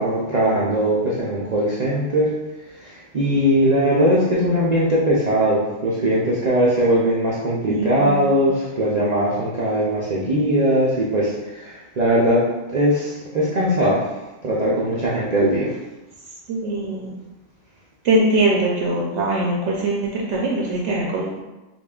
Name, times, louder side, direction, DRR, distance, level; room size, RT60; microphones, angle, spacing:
voice 1, 0.0-2.3 2.7-14.1 14.4-15.8, equal, 50° right, -7 dB, 0.5 m, -20 dB
voice 2, 7.7-8.2 16.5-17.2 18.0-21.4, right 2 dB, 70° right, -3 dB, 0.9 m, -22 dB
5.2 x 2.4 x 2.3 m, 1.1 s
omnidirectional pair, 1.3 m